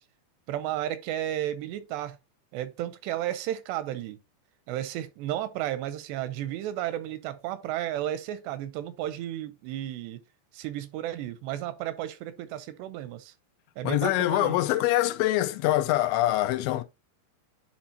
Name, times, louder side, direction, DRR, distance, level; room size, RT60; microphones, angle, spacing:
voice 1, 0.5-2.2 2.5-4.2 4.7-10.2 10.5-13.3 13.8-14.5, right 12 dB, 85° right, 2.7 m, -33 dB
voice 2, 13.8-16.8, left 15 dB, 90° left, 3.0 m, -24 dB
10.5 x 4.3 x 2.7 m
omnidirectional pair, 5.0 m